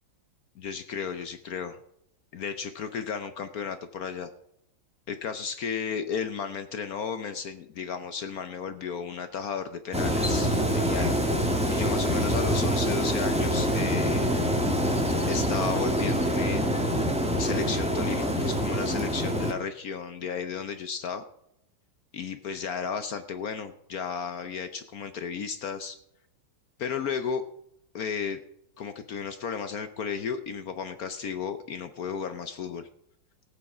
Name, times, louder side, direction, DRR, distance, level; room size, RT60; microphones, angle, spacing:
voice 1, 0.6-1.8 2.3-4.3 5.1-11.1 11.4-14.3 15.3-16.6 17.4-21.2 22.1-26.0 26.8-27.4 27.9-28.4 28.8-32.9, left 6 dB, 65° left, 9 dB, 0.9 m, -34 dB
sound 1, 9.9-19.5, equal, 5° right, 1.0 m, -25 dB
16.5 x 8.6 x 4.9 m, 0.78 s
omnidirectional pair, 2.3 m